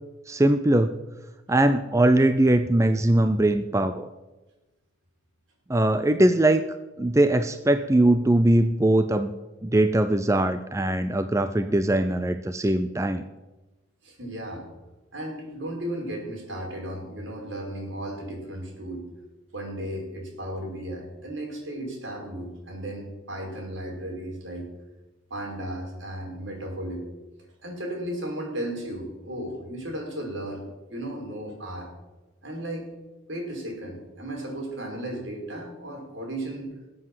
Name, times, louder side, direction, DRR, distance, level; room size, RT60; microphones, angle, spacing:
voice 1, 0.3-1.0 1.5-4.1 5.7-6.6 7.0-9.3 9.6-13.2, right 1 dB, 15° right, 10 dB, 0.5 m, -21 dB
voice 2, 14.0-14.6 15.1-19.1 19.5-24.7 25.3-27.0 27.6-30.6 30.9-31.9 32.4-32.9 33.3-36.7, right 1 dB, 70° right, 0 dB, 5.1 m, -35 dB
20.0 x 7.8 x 7.6 m, 1.1 s
head